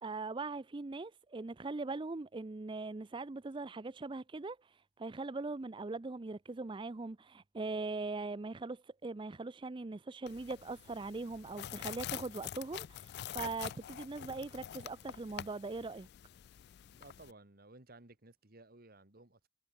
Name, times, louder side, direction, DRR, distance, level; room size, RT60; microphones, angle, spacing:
voice 1, 0.0-16.1, right 3 dB, 25° right, 0.5 m, -41 dB
sound 1, 10.3-17.3, left 11 dB, 60° left, 0.3 m, -46 dB
voice 2, 16.9-19.5, right 2 dB, 50° right, 2.2 m, -57 dB
head